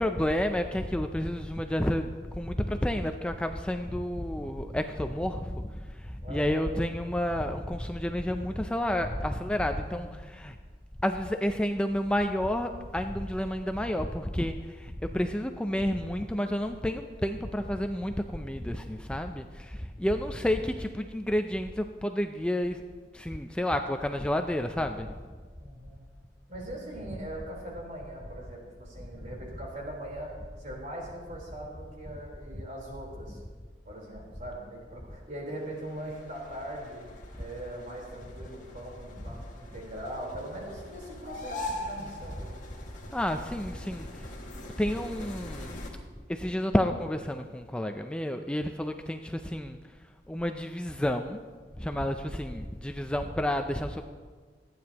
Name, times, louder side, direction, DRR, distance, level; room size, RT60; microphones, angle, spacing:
voice 1, 0.0-10.6 11.0-22.8 23.1-25.1 43.1-44.1 44.8-45.8 46.3-49.8 50.3-51.4 51.8-54.0, left 1 dB, 5° left, 5 dB, 0.4 m, -30 dB
voice 2, 6.2-6.7 9.8-10.4 20.0-20.1 25.6-26.1 26.5-30.3 30.6-33.4 33.9-37.0 37.4-42.5, right 1 dB, 45° right, -3 dB, 3.9 m, -41 dB
sound 1, 35.5-45.9, left 1 dB, 45° left, 2.0 m, -42 dB
27.5 x 9.4 x 2.9 m, 1.5 s
head